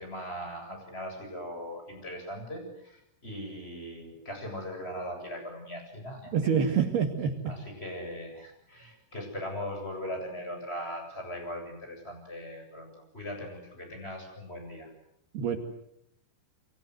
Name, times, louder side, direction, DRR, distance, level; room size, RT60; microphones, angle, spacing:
voice 1, 0.0-6.6 7.4-14.9, equal, 10° left, 3 dB, 7.7 m, -39 dB
voice 2, 6.3-7.6 15.3-15.6, right 7 dB, 60° right, 5 dB, 3.7 m, -26 dB
29.5 x 24.5 x 8.0 m, 0.75 s
omnidirectional pair, 5.8 m